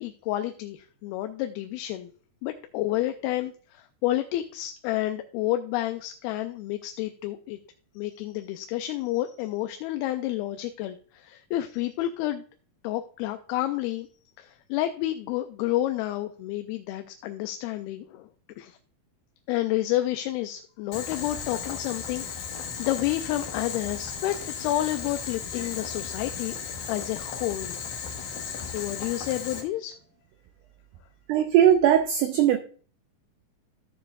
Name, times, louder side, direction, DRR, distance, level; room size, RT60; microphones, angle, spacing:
voice 1, 0.0-2.1 2.4-7.6 8.0-12.4 12.8-14.1 14.4-18.3 18.6-18.8 19.5-26.6 26.9-27.8 28.7-30.0, left 14 dB, 90° left, 2.5 m, -30 dB
Boiling, 20.9-29.6, left 6 dB, 65° left, 2.4 m, -35 dB
voice 2, 31.3-32.6, right 10 dB, 90° right, 1.8 m, -19 dB
14.0 x 6.7 x 2.3 m
omnidirectional pair, 4.3 m